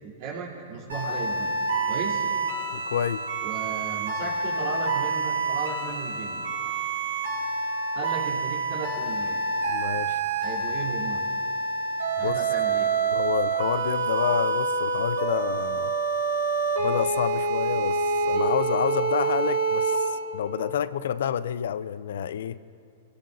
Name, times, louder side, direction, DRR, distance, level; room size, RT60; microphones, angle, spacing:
voice 1, 0.0-1.6 1.9-2.3 3.4-6.5 7.9-9.4 10.4-11.2 12.2-12.9, right 5 dB, 55° right, -4 dB, 3.6 m, -35 dB
sound 1, 0.9-19.9, right 3 dB, 80° right, 4.2 m, -27 dB
voice 2, 2.7-3.3 9.7-10.2 12.2-12.4 13.1-15.9 16.8-22.6, left 9 dB, 70° left, 16 dB, 0.5 m, -29 dB
25.5 x 16.5 x 2.7 m, 2.4 s
hypercardioid pair, 110°, 0 cm